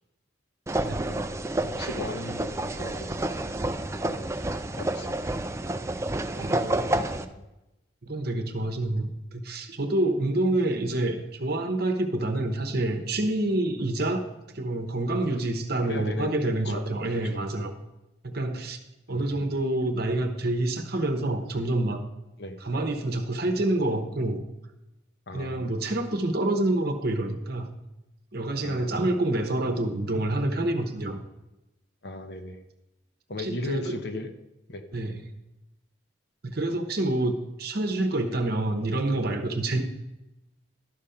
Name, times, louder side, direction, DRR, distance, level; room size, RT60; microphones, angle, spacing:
sound 1, 0.7-7.2, right 1 dB, 15° right, 0.3 m, -29 dB
voice 1, 1.0-1.3 1.6-3.2 4.0-4.2 4.8-5.2 7.1-7.4 15.7-16.4 16.7-16.8 17.0-17.2 19.1-19.5 22.4-22.6 25.3-25.7 28.6-29.1 32.0-32.6 33.3-34.3 34.7-34.8, left 2 dB, 55° left, 7 dB, 0.9 m, -37 dB
voice 2, 6.4-6.9 8.0-14.3 14.5-17.7 18.2-18.8 19.1-22.0 22.6-24.4 25.3-27.7 28.3-31.2 33.4-34.0 34.9-35.2 36.4-39.8, right 2 dB, 50° right, 6 dB, 0.9 m, -27 dB
12.0 x 5.1 x 5.7 m, 0.97 s
head